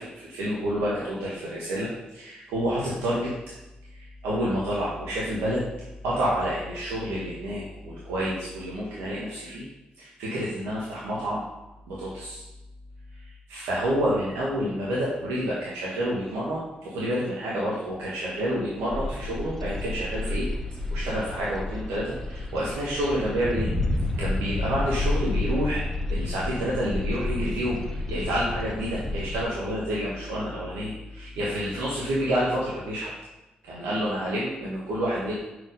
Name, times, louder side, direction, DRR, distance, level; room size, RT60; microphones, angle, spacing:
voice 1, 0.0-3.3 3.9-5.6 6.0-9.6 10.0-11.4 11.9-12.4 13.5-20.5 20.9-23.7 24.2-33.1 33.6-35.3, equal, 85° right, -7 dB, 1.4 m, -29 dB
sound 1, 18.9-29.4, left 2 dB, 10° left, 1.3 m, -30 dB
5.8 x 5.0 x 5.3 m, 1.0 s
hypercardioid pair, 45°, 4 cm